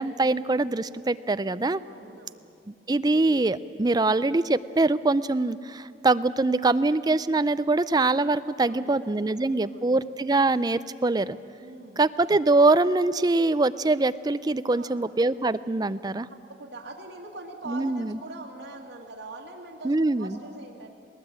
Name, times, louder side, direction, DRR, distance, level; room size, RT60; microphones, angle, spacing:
voice 1, 0.0-1.8 2.7-11.4 12.0-16.3 17.7-18.2 19.8-20.4, right 2 dB, 20° right, 14 dB, 0.4 m, -23 dB
voice 2, 1.9-2.5 8.6-9.3 9.6-10.0 11.6-12.0 14.7-15.1 16.3-20.9, right 2 dB, 80° right, -3 dB, 2.1 m, -43 dB
19.5 x 19.0 x 8.8 m, 2.4 s
head